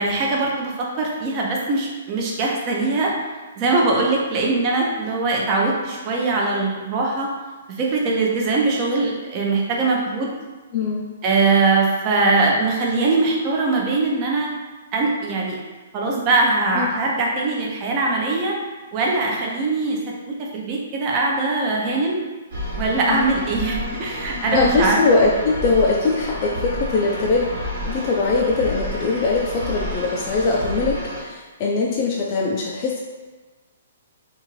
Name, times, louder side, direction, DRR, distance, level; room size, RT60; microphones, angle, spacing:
voice 1, 0.0-3.1 3.5-7.3 7.8-10.3 11.2-14.5 14.9-15.6 15.9-18.6 18.9-20.0 20.3-22.2 22.8-25.0, right 3 dB, 30° right, -2 dB, 0.6 m, -21 dB
voice 2, 10.7-11.1 16.7-16.9 22.9-23.2 24.5-27.6 27.9-33.0, left 3 dB, 35° left, -3 dB, 0.3 m, -21 dB
sound 1, 22.5-31.2, left 1 dB, 55° right, 1.1 m, -30 dB
2.5 x 2.4 x 3.0 m, 1.3 s
hypercardioid pair, 150°, 0 cm